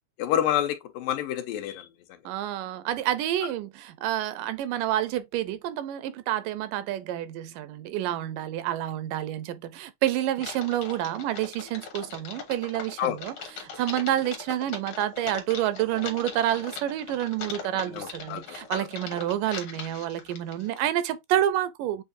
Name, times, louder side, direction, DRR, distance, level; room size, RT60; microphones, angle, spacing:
voice 1, 0.2-1.9 13.0-13.2 17.9-18.4 18.7-18.8, left 11 dB, 90° left, 2.5 m, -28 dB
voice 2, 2.3-22.0, right 12 dB, 85° right, 2.2 m, -29 dB
Typing, 10.4-20.9, left 6 dB, 65° left, 1.3 m, -40 dB
7.4 x 2.6 x 2.7 m
omnidirectional pair, 3.8 m